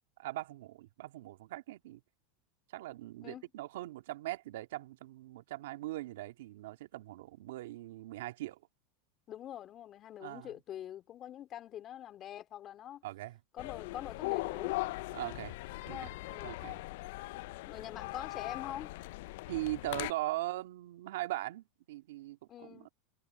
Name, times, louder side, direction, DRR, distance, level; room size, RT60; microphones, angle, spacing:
voice 1, 0.2-2.0 2.7-8.6 10.2-10.5 13.0-13.4 15.1-15.6 15.9-16.1 16.4-16.8 19.5-22.9, right 17 dB, 75° right, 2.0 m, -40 dB
voice 2, 9.3-13.0 13.5-14.8 15.8-16.6 17.7-19.0 22.5-22.9, left 11 dB, 40° left, 3.2 m, -45 dB
sound 1, 13.6-20.1, left 21 dB, 70° left, 0.4 m, -39 dB
hypercardioid pair, 105°, 0 cm